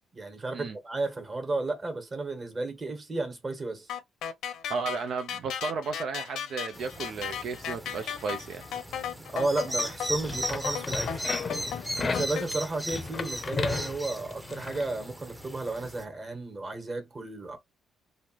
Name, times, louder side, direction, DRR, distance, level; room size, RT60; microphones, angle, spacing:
voice 1, 0.1-3.9 9.3-11.2 12.0-17.6, right 2 dB, 30° right, 1.5 m, -33 dB
sound 1, 3.9-12.5, left 8 dB, 80° left, 0.7 m, -36 dB
voice 2, 4.7-8.6, right 4 dB, 65° right, 0.5 m, -34 dB
sound 2, 6.7-16.0, equal, 10° right, 0.8 m, -38 dB
sound 3, 10.1-14.9, left 4 dB, 35° left, 0.6 m, -35 dB
3.2 x 2.6 x 2.9 m
cardioid pair, 90°, 0 cm